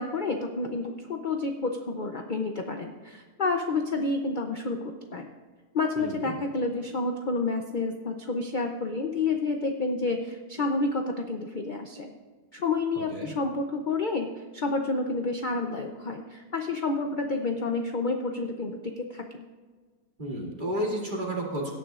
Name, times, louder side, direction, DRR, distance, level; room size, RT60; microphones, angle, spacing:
voice 1, 0.0-5.3 5.7-12.1 12.5-19.4, left 3 dB, 45° left, 4 dB, 0.6 m, -29 dB
voice 2, 6.0-6.3 12.9-13.3 20.2-21.7, right 1 dB, 30° right, -3 dB, 2.5 m, -32 dB
17.5 x 10.5 x 2.5 m, 1.4 s
omnidirectional pair, 1.7 m